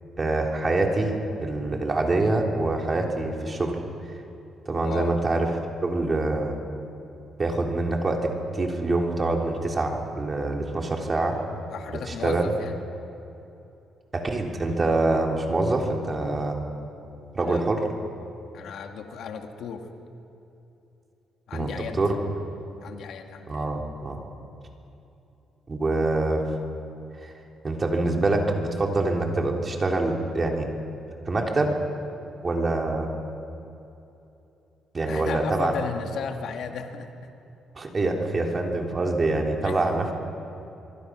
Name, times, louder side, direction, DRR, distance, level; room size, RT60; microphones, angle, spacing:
voice 1, 0.2-1.1 1.4-3.8 4.7-5.5 5.8-6.5 7.4-11.4 12.2-12.4 14.1-16.6 17.3-17.8 21.5-22.2 23.5-24.2 25.7-26.4 27.2-27.3 27.6-30.7 31.3-31.7 32.4-33.1 34.9-35.7 37.8-40.1, right 2 dB, 30° right, 1 dB, 3.5 m, -25 dB
voice 2, 4.8-5.2 11.7-12.8 17.4-17.6 18.5-19.9 21.5-22.0 22.8-23.7 35.0-37.3 39.6-39.8, left 6 dB, 75° left, 4 dB, 2.1 m, -35 dB
24.5 x 24.0 x 6.3 m, 2.9 s
cardioid pair, 90°, 0 cm